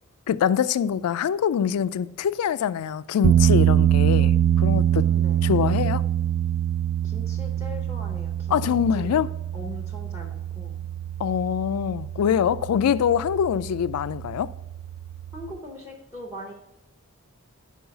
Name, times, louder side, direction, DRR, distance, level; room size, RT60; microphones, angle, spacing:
voice 1, 0.3-5.0 5.4-6.0 8.5-9.3 11.2-14.5, left 8 dB, 80° left, 0.3 m, -24 dB
sound 1, 3.2-15.6, right 10 dB, 80° right, 0.3 m, -24 dB
voice 2, 4.9-5.4 7.0-8.6 8.9-9.3 9.5-10.8 15.3-16.5, left 1 dB, 10° right, 0.7 m, -40 dB
5.5 x 4.7 x 5.7 m
head